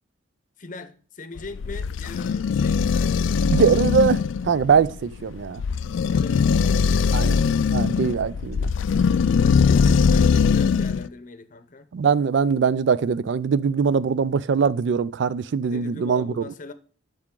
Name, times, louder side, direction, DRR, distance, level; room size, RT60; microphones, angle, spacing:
voice 1, 0.6-3.4 6.1-8.2 9.4-11.9 15.7-16.7, left 3 dB, 40° left, 0.7 m, -41 dB
sound 1, 1.4-11.1, left 5 dB, 80° left, 0.4 m, -21 dB
voice 2, 3.5-5.6 7.1-7.4 7.7-8.7 11.9-16.4, right 6 dB, 65° right, 0.3 m, -22 dB
11.5 x 4.9 x 3.7 m
head